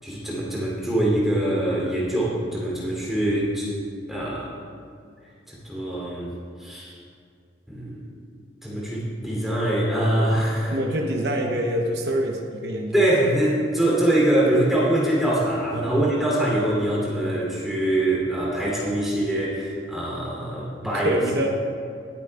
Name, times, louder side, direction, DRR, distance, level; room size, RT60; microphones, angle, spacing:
voice 1, 0.0-3.6 4.1-4.5 5.5-6.3 6.6-6.9 7.7-8.0 8.6-10.8 12.9-21.2, right 1 dB, ahead, -5 dB, 2.9 m, -23 dB
voice 2, 10.7-13.1 15.7-16.0 20.8-21.5, equal, 65° right, 1 dB, 0.9 m, -26 dB
20.5 x 8.6 x 2.3 m, 2.3 s
head